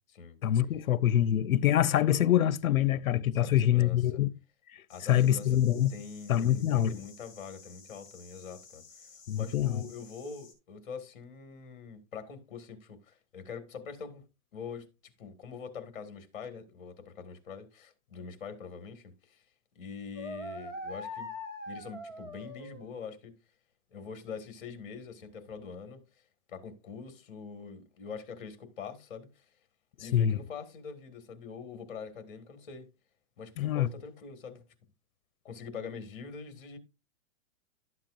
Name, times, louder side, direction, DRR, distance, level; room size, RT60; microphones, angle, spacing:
voice 1, 0.4-4.3 4.7-4.8 5.1-5.9 6.3-7.0 9.3-9.8 30.1-30.4 33.6-33.9, left 11 dB, 90° left, 0.8 m, -25 dB
voice 2, 3.3-4.0 4.9-5.6 5.9-8.8 9.4-14.3 14.5-14.9 15.2-19.4 19.8-21.3 21.7-23.3 23.9-26.1 26.5-29.4 30.0-32.9 33.4-34.6 35.4-36.8, left 5 dB, 40° left, 2.1 m, -44 dB
sound 1, 4.9-10.5, left 5 dB, 20° left, 4.2 m, -54 dB
sound 2, 20.1-22.9, left 1 dB, 10° right, 0.7 m, -41 dB
12.5 x 7.6 x 2.6 m
hypercardioid pair, 175°, 41 cm